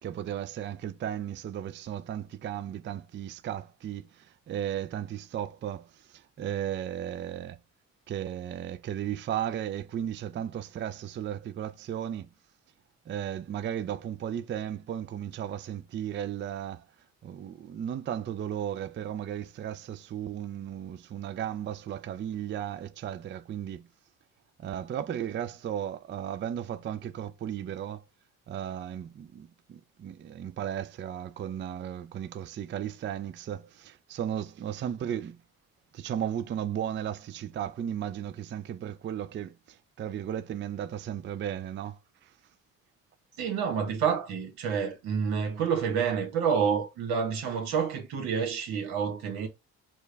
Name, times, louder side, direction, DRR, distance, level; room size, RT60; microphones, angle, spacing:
voice 1, 0.0-7.6 8.1-12.3 13.1-16.8 17.2-23.9 24.6-28.0 28.5-35.4 35.9-42.3, right 10 dB, 30° right, 0.4 m, -35 dB
voice 2, 43.4-49.5, right 7 dB, 80° right, 1.3 m, -28 dB
4.4 x 2.3 x 3.3 m
supercardioid pair, 65°, 37 cm